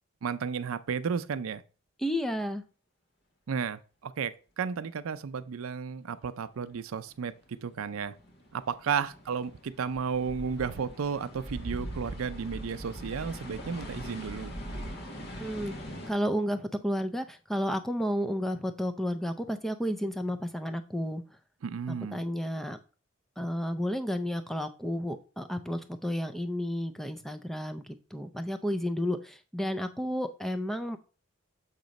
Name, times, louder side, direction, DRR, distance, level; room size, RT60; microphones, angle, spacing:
voice 1, 0.2-1.6 3.5-8.2 8.5-14.5 21.6-22.2, right 6 dB, 80° right, 0.5 m, -33 dB
voice 2, 2.0-2.6 15.4-15.7 16.1-21.2 21.9-22.8 23.4-31.0, equal, ahead, 0.4 m, -32 dB
sound 1, 7.0-16.1, equal, 50° left, 1.2 m, -41 dB
7.3 x 2.9 x 5.2 m
head